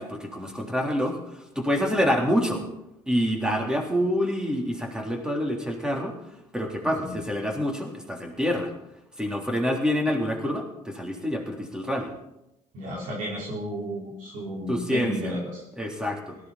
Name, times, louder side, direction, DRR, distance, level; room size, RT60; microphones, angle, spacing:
voice 1, 0.0-2.7 3.1-6.2 6.5-8.7 9.2-12.1 14.7-15.3 15.8-16.4, equal, 5° right, 1 dB, 3.6 m, -27 dB
voice 2, 12.7-15.6, equal, 70° right, -5 dB, 4.7 m, -33 dB
18.0 x 14.5 x 4.3 m, 0.88 s
supercardioid pair, 90°, 14 cm